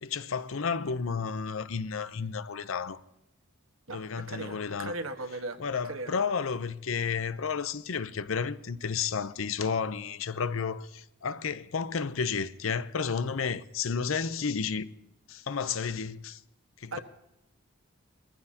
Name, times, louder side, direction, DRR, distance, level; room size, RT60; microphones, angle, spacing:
voice 1, 0.0-3.0 3.9-4.9 5.6-14.9 15.3-16.4 16.8-17.0, left 5 dB, 75° left, 0.6 m, -32 dB
voice 2, 3.9-6.1 16.9-17.0, right 2 dB, 80° right, 1.4 m, -38 dB
22.0 x 15.0 x 2.8 m
head